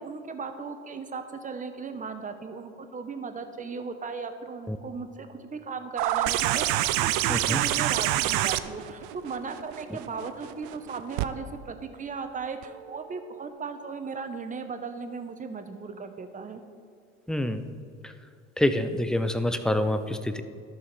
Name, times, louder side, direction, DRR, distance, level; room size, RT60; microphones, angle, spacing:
voice 1, 0.0-16.6, right 4 dB, 25° right, 8 dB, 0.9 m, -37 dB
sound 1, 6.0-11.3 12.6-12.7, right 14 dB, 60° right, 0.5 m, -27 dB
voice 2, 17.3-17.7 18.0-18.1 18.6-20.4, left 1 dB, ahead, 9 dB, 0.5 m, -26 dB
12.5 x 5.7 x 4.1 m, 2.4 s
hypercardioid pair, 80°, 34 cm